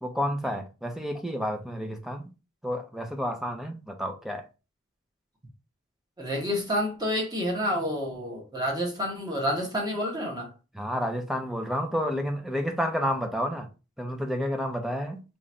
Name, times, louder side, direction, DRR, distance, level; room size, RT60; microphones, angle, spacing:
voice 1, 0.0-2.3 2.6-4.4 10.7-13.7 14.0-15.2, equal, ahead, 0.5 m, -30 dB
voice 2, 6.2-10.5, equal, 20° right, 1.1 m, -29 dB
2.9 x 2.5 x 4.3 m
head